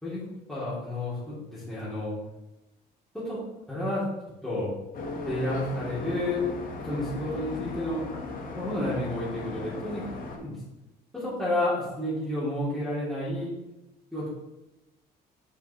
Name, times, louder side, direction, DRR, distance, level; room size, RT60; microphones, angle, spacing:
voice 1, 0.5-2.1 3.1-3.4 3.7-4.1 4.4-4.7 5.2-6.4 6.8-8.1 8.6-10.0 10.4-10.5 11.1-13.5 14.1-14.3, left 1 dB, ahead, -12 dB, 2.4 m, -30 dB
sound 1, 4.9-10.4, left 3 dB, 55° left, 1.2 m, -37 dB
5.6 x 5.0 x 4.2 m, 0.99 s
cardioid pair, 110°, 17 cm